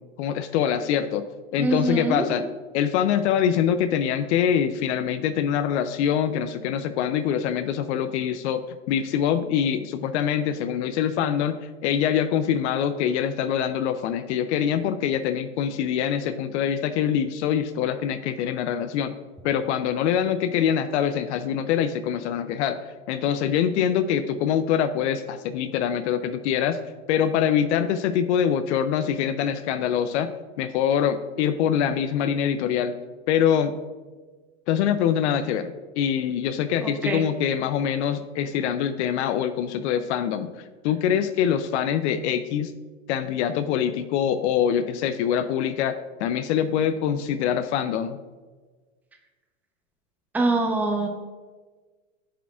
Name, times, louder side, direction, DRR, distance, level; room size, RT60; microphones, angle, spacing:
voice 1, 0.2-1.2 1.5-2.4 2.7-19.1 19.4-26.8 27.1-30.3 30.6-32.9 33.3-33.7 34.7-40.5 40.8-42.7 43.1-48.2, left 9 dB, 55° left, 10 dB, 0.6 m, -24 dB
voice 2, 1.6-2.2 36.8-37.2 50.3-51.1, right 2 dB, 5° right, 2 dB, 0.8 m, -24 dB
10.0 x 7.0 x 2.4 m, 1.4 s
hypercardioid pair, 105°, 41 cm